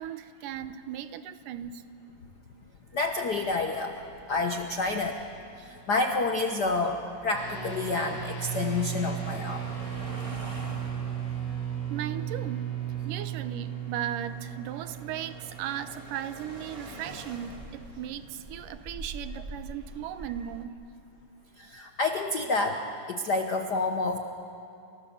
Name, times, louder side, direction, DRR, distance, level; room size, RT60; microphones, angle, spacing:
voice 1, 0.0-1.8 11.9-12.7 13.1-20.8, right 10 dB, 85° right, 11 dB, 2.5 m, -37 dB
voice 2, 2.9-4.0 4.3-5.2 5.6-9.6 21.6-22.8 23.1-24.2, left 3 dB, 85° left, 4 dB, 0.9 m, -28 dB
sound 1, 3.1-20.6, right 1 dB, 15° right, 1.2 m, -47 dB
sound 2, 7.3-17.0, right 9 dB, 45° left, 6.0 m, -36 dB
30.0 x 27.5 x 7.2 m, 2.7 s
omnidirectional pair, 3.7 m